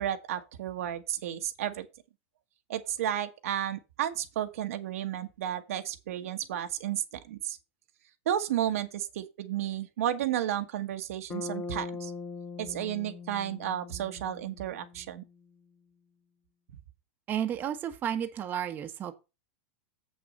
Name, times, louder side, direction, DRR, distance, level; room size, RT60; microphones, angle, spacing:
voice 1, 0.0-1.9 2.7-7.6 8.2-12.1 12.6-15.2, right 11 dB, 80° right, 1.4 m, -32 dB
Bass guitar, 11.3-15.4, left 4 dB, 15° left, 0.9 m, -41 dB
voice 2, 17.3-19.1, right 9 dB, 25° right, 1.2 m, -32 dB
7.8 x 6.2 x 5.3 m
supercardioid pair, 150°, 8 cm